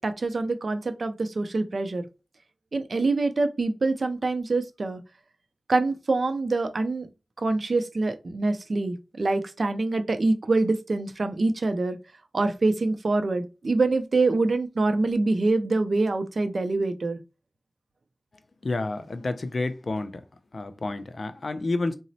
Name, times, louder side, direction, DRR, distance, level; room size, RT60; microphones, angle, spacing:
voice 1, 0.0-2.1 2.7-5.0 5.7-7.1 7.4-12.0 12.3-17.2, right 3 dB, 70° right, 0.4 m, -25 dB
voice 2, 18.6-20.1 20.5-21.9, left 2 dB, 70° left, 0.4 m, -29 dB
3.9 x 2.0 x 2.6 m
wide cardioid pair, 75°, 0 cm